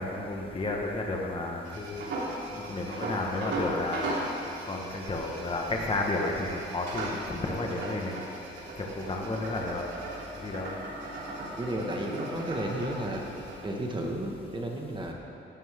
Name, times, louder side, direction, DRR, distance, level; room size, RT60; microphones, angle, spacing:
voice 1, 0.0-2.0 2.5-4.0 4.7-8.2 8.8-9.8 10.4-10.8, left 2 dB, 25° left, 0 dB, 1.5 m, -32 dB
sound 1, 1.6-13.6, right 1 dB, 65° right, 3.5 m, -38 dB
voice 2, 11.6-13.2 13.6-15.1, right 1 dB, 25° right, 0 dB, 1.8 m, -33 dB
16.5 x 12.0 x 3.8 m, 2.8 s
cardioid pair, 90°, 20 cm